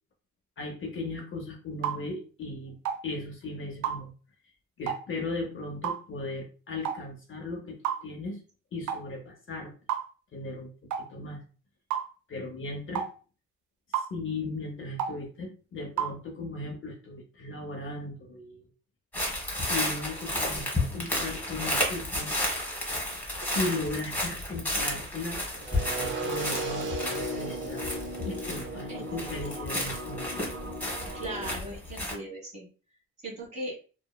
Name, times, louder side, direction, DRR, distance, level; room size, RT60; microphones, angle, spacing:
voice 1, 0.6-2.8 3.0-4.1 4.8-8.4 8.7-9.7 10.3-10.7 11.1-11.4 12.3-13.1 13.9-18.7 19.7-22.3 23.5-25.4 25.7-28.0 28.2-30.4, left 2 dB, 40° left, 2 dB, 0.6 m, -37 dB
sound 1, 1.8-2.0 2.8-3.0 3.8-4.0 4.9-5.0 5.8-6.0 6.8-7.0 7.8-8.0 8.9-9.1 9.9-10.1 10.9-11.1 11.9-12.1 12.9-13.1 13.9-14.1 15.0-15.2 16.0-16.2, right 9 dB, 75° right, 0.5 m, -30 dB
sound 2, 19.1-28.9 29.2-32.1, left 1 dB, 5° left, 1.2 m, -32 dB
sound 3, 25.6-31.6, right 1 dB, 40° right, 0.6 m, -36 dB
voice 2, 28.9-29.3 31.1-32.7 33.2-33.8, right 1 dB, 20° right, -3 dB, 1.3 m, -38 dB
2.9 x 2.1 x 2.2 m, 0.37 s
cardioid pair, 90°, 30 cm